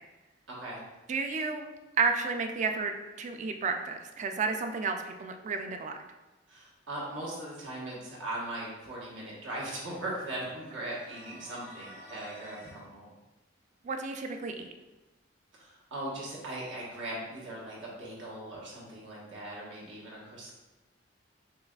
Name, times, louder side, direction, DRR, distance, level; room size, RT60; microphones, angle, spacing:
voice 1, 0.5-0.8 6.5-13.1 15.5-20.5, right 1 dB, 80° right, -5 dB, 1.2 m, -39 dB
voice 2, 1.1-1.7 2.0-5.9 13.8-14.7, right 4 dB, 40° right, 5 dB, 0.3 m, -31 dB
sound 1, 10.6-12.8, equal, 60° right, 1.1 m, -50 dB
6.6 x 2.4 x 2.3 m, 1.1 s
head